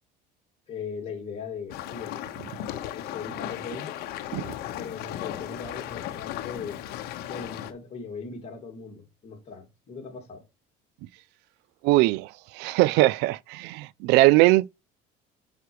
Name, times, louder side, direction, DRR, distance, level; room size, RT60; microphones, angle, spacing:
voice 1, 0.7-2.1 2.9-4.0 4.8-6.8 7.3-10.4, left 5 dB, 35° left, 2.6 m, -39 dB
sound 1, 1.7-7.7, left 12 dB, 65° left, 1.0 m, -36 dB
voice 2, 11.8-14.7, right 19 dB, 75° right, 0.4 m, -21 dB
6.5 x 5.7 x 4.7 m
cardioid pair, 135°, 17 cm